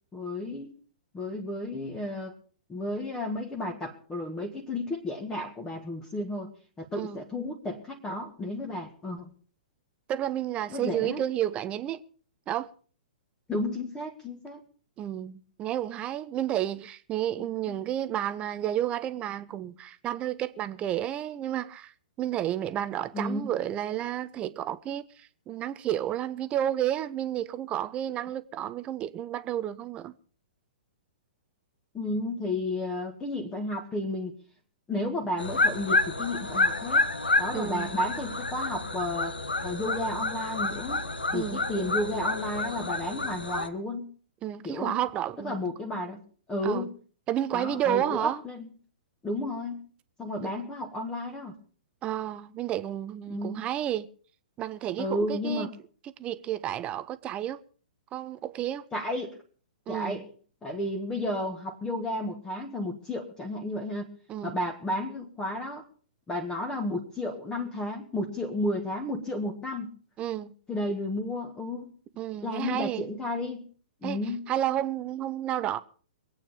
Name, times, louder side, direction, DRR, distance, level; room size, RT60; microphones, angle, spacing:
voice 1, 0.1-0.7 1.1-2.3 2.7-6.5 6.8-9.3 10.7-11.2 13.5-14.6 17.4-17.8 23.1-23.5 31.9-34.3 34.9-37.0 37.4-41.1 41.3-44.1 44.6-45.0 45.4-46.2 46.5-46.9 47.5-48.7 49.2-49.8 50.2-51.6 53.3-53.6 55.0-55.7 58.9-59.4 59.9-60.3 60.6-64.1 64.4-65.8 66.3-69.9 70.7-71.9 72.4-73.6 74.0-74.4, left 1 dB, 10° left, 1.7 m, -32 dB
voice 2, 10.1-12.0 12.5-12.7 15.0-21.9 22.2-30.1 37.5-37.9 41.3-41.6 44.4-45.5 46.6-46.9 47.3-48.4 52.0-54.1 54.6-55.7 56.2-57.6 58.1-58.8 59.9-60.2 64.3-64.6 70.2-70.5 72.2-73.0 74.0-74.2 74.5-75.8, right 11 dB, 20° right, 0.7 m, -31 dB
sound 1, 35.4-43.7, left 2 dB, 80° left, 1.4 m, -29 dB
23.0 x 8.8 x 5.1 m
figure-of-eight pair, 115°, 5 cm